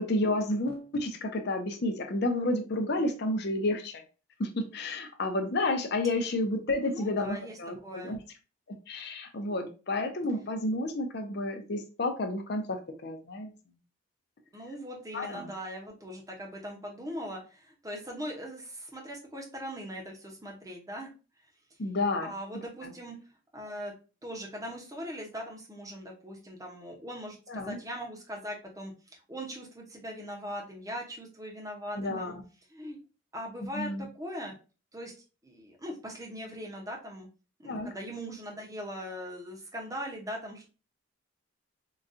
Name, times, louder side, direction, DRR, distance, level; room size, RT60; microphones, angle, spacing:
voice 1, 0.0-4.0 4.4-8.2 8.9-13.5 15.1-15.5 21.8-22.3 27.5-27.8 32.0-32.4 33.6-34.1 37.6-37.9, left 2 dB, 50° left, 5 dB, 0.5 m, -31 dB
voice 2, 6.8-8.2 14.5-21.1 22.2-23.2 23.5-23.9 24.2-32.3 32.7-33.0 33.3-34.6 34.9-35.1 35.4-37.3 37.6-40.6, equal, 15° right, -1 dB, 0.7 m, -40 dB
3.9 x 2.3 x 2.5 m, 0.34 s
head